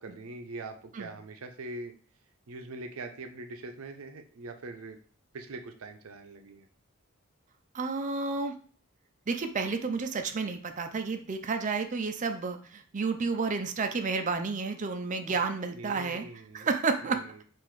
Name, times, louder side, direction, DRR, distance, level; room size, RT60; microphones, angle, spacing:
voice 1, 0.0-1.9 2.5-5.0 5.3-6.7 15.7-16.7 17.0-17.4, right 2 dB, 90° right, 6 dB, 0.5 m, -42 dB
voice 2, 7.7-8.5 9.3-16.2 16.5-17.4, right 4 dB, 35° right, 7 dB, 0.4 m, -31 dB
3.8 x 2.5 x 4.6 m, 0.43 s
head